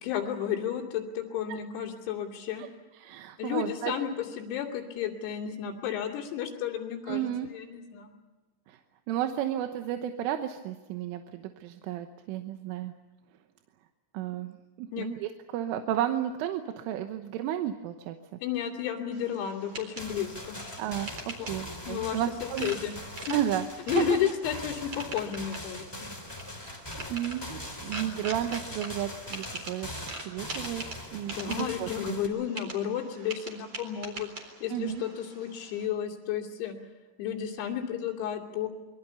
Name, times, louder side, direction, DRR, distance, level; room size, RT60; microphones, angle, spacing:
voice 1, 0.0-2.7 3.4-8.2 14.9-15.1 18.4-20.6 21.4-21.5 21.8-22.2 22.6-22.9 23.2-23.4 23.9-26.1 31.4-36.8 37.2-38.7, left 9 dB, 85° left, -2 dB, 5.3 m, -32 dB
voice 2, 3.0-3.9 7.1-7.5 8.7-8.8 9.1-12.9 14.1-18.2 20.8-22.7 23.3-24.2 26.6-26.8 27.1-29.9 30.2-30.9 31.1-32.2 34.7-35.0, right 11 dB, 75° right, 7 dB, 3.5 m, -33 dB
sound 1, 19.1-35.9, right 2 dB, 30° right, 4.3 m, -44 dB
sound 2, 20.0-32.3, left 1 dB, 10° left, 1.8 m, -41 dB
25.5 x 23.0 x 6.9 m, 1.2 s
omnidirectional pair, 6.0 m